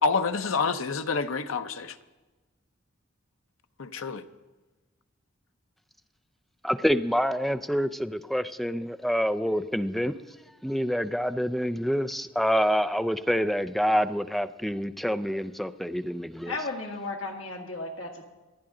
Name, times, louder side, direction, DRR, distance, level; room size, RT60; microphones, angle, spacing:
voice 1, 0.0-2.0 3.8-4.2, left 4 dB, 90° left, 0.7 m, -27 dB
voice 2, 6.6-10.1 10.6-16.6, equal, ahead, 0.4 m, -27 dB
voice 3, 16.4-18.2, left 3 dB, 70° left, 1.9 m, -34 dB
26.5 x 9.7 x 3.8 m
head